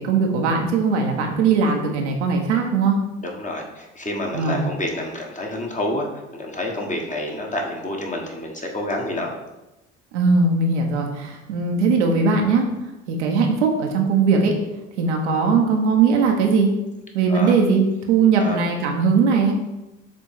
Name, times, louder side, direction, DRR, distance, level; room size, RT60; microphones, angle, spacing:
voice 1, 0.0-3.0 4.3-4.7 10.1-12.7 13.1-14.5 15.0-16.7 17.1-19.5, right 4 dB, 75° right, 2 dB, 1.1 m, -19 dB
voice 2, 3.2-9.3 17.3-17.5 18.4-18.6, left 1 dB, 20° left, 1 dB, 1.5 m, -28 dB
7.1 x 3.6 x 4.7 m, 0.99 s
figure-of-eight pair, 55°, 35 cm